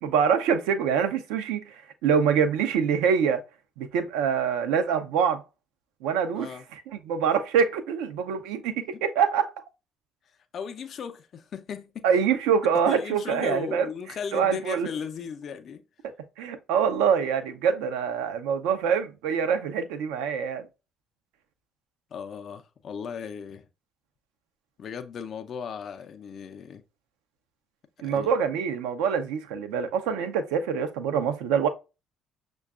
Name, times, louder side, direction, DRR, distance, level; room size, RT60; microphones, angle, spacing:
voice 1, 0.0-3.4 3.8-5.4 6.0-9.6 12.0-13.9 14.3-14.9 16.4-20.7 28.0-31.7, right 7 dB, 75° right, 0.5 m, -25 dB
voice 2, 6.3-6.6 8.9-9.0 10.5-12.0 12.9-15.8 22.1-23.7 24.8-26.8 28.0-28.3, left 7 dB, 50° left, 0.4 m, -36 dB
6.3 x 2.3 x 2.3 m
hypercardioid pair, 50°, 0 cm